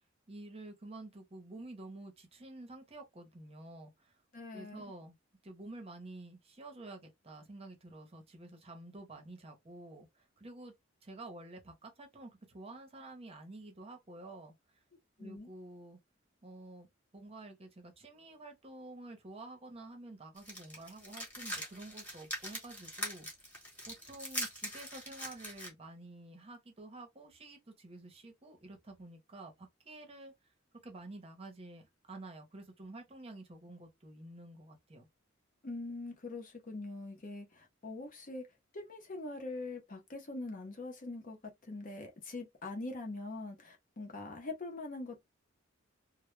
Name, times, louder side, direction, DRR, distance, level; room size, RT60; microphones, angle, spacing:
voice 1, 0.3-4.2 4.5-5.2 5.4-10.7 11.0-14.5 15.2-16.0 16.4-23.3 23.8-30.3 30.8-35.1, right 2 dB, 30° right, 0.7 m, -50 dB
voice 2, 4.3-4.8 15.2-15.5 35.6-38.5 38.7-45.2, left 2 dB, 40° left, 0.6 m, -43 dB
sound 1, 20.4-25.7, equal, 10° left, 1.0 m, -42 dB
2.1 x 2.0 x 3.1 m
head